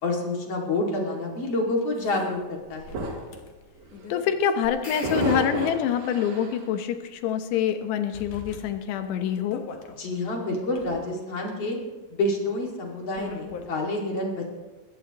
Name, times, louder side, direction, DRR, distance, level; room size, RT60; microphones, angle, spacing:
voice 1, 0.0-3.0 10.0-11.8 12.1-14.5, left 2 dB, 40° left, 0 dB, 2.9 m, -28 dB
sound 1, 1.8-1.9 2.1-2.2 2.9-6.3 6.6-6.7 7.3-7.7 8.1-10.0 10.5-13.8, left 5 dB, 60° left, 2.5 m, -44 dB
sound 2, 2.0-2.2 2.7-3.4 3.8-4.0 5.0-6.7, right 2 dB, 80° right, 4.0 m, -31 dB
voice 2, 4.1-9.7, left 9 dB, 90° left, 7 dB, 3.2 m, -26 dB
sound 3, 4.6-6.2, left 2 dB, 20° left, 3.9 m, -43 dB
21.5 x 16.5 x 3.0 m, 1.2 s
omnidirectional pair, 4.8 m